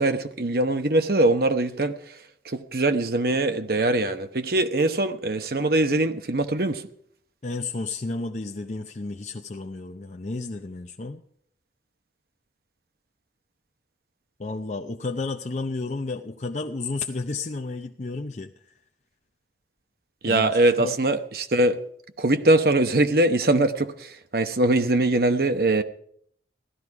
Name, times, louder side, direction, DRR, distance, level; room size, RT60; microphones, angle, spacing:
voice 1, 0.0-1.9 2.4-6.8 20.2-21.8 22.2-25.8, right 2 dB, 55° right, 9 dB, 1.0 m, -22 dB
voice 2, 7.4-11.2 14.4-18.5 20.3-20.9, left 3 dB, 40° left, 4 dB, 0.6 m, -32 dB
15.5 x 12.5 x 4.8 m, 0.65 s
head